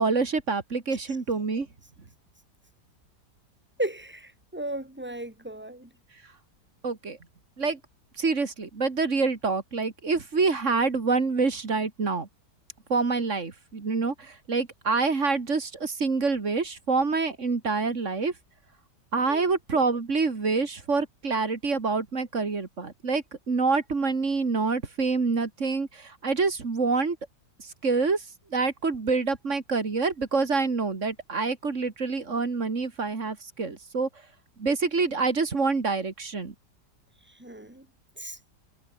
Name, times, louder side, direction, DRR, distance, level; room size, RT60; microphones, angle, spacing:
voice 1, 0.0-1.7 6.8-7.2 7.6-7.8 8.2-12.3 12.9-18.3 19.1-27.2 27.6-28.3 28.5-34.1 34.6-36.5, right 4 dB, 45° right, 2.5 m, -26 dB
voice 2, 3.8-5.9 19.2-19.5 37.3-37.9 38.2-38.4, right 1 dB, 5° right, 3.2 m, -35 dB
omnidirectional pair, 1.9 m